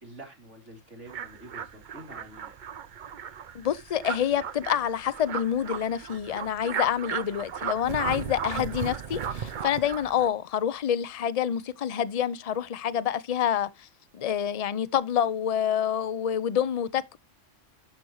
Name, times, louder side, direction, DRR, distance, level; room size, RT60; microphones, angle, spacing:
voice 1, 0.0-2.5, right 1 dB, 65° right, 3.5 m, -47 dB
sound 1, 1.1-10.3, right 8 dB, 50° right, 0.7 m, -36 dB
voice 2, 3.5-13.9 14.1-17.2, left 9 dB, 45° left, 0.5 m, -27 dB
11.5 x 6.0 x 3.0 m
omnidirectional pair, 1.3 m